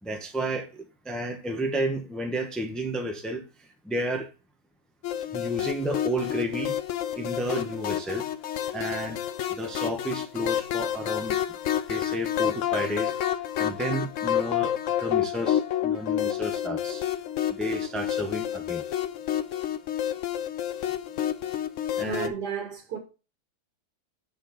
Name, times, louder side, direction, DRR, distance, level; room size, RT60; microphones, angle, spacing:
voice 1, 0.0-4.3 5.3-6.8 7.2-8.3 8.7-9.2 9.5-11.4 11.9-13.1 13.6-17.0 17.5-18.8 22.0-22.3, right 1 dB, ahead, 1.0 m, -31 dB
sound 1, 5.0-22.3, left 11 dB, 65° left, 0.8 m, -29 dB
voice 2, 22.0-23.0, right 7 dB, 70° right, 2.3 m, -33 dB
6.6 x 6.3 x 4.2 m
omnidirectional pair, 1.8 m